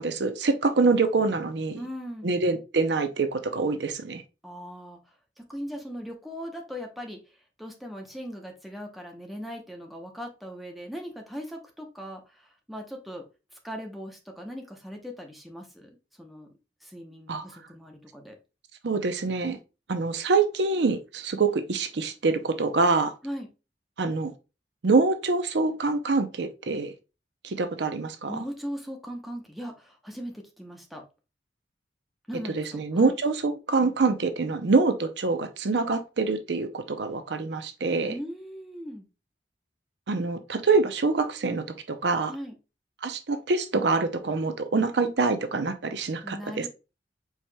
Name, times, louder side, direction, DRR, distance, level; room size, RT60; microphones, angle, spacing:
voice 1, 0.0-1.8 2.2-4.2 17.3-17.5 18.8-19.6 19.9-23.1 24.0-24.3 24.8-26.9 27.4-28.4 32.6-38.1 40.1-42.3 43.0-46.7, right 3 dB, 70° right, 0.6 m, -25 dB
voice 2, 1.7-2.3 4.4-5.0 5.4-7.2 7.6-13.2 13.6-15.9 16.2-16.5 16.8-18.4 23.2-23.5 28.3-31.0 32.3-33.1 38.1-39.0 42.3-42.5 46.2-46.7, equal, ahead, 0.8 m, -39 dB
4.8 x 4.2 x 2.2 m
head